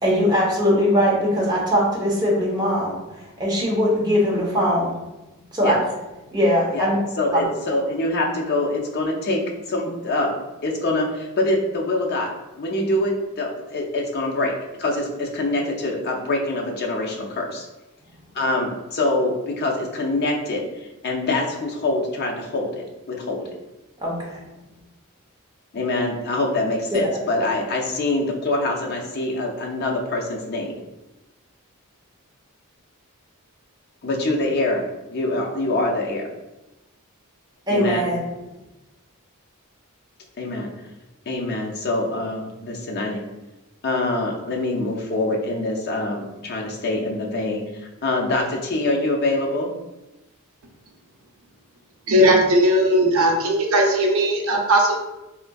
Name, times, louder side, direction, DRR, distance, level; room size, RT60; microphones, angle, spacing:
voice 1, 0.0-5.0 5.5-5.8 6.3-7.0 24.0-24.4 26.9-27.0 37.7-38.2, equal, 20° right, -4 dB, 0.7 m, -21 dB
voice 2, 7.2-10.4 10.6-17.7 18.3-23.5 25.7-30.8 34.0-34.8 35.1-36.3 37.7-38.1 40.4-40.7 41.3-43.2 43.8-49.7, left 2 dB, 45° left, 0 dB, 0.5 m, -25 dB
voice 3, 52.1-55.0, right 1 dB, 70° right, 1 dB, 0.6 m, -18 dB
3.6 x 2.5 x 2.2 m, 1.0 s
head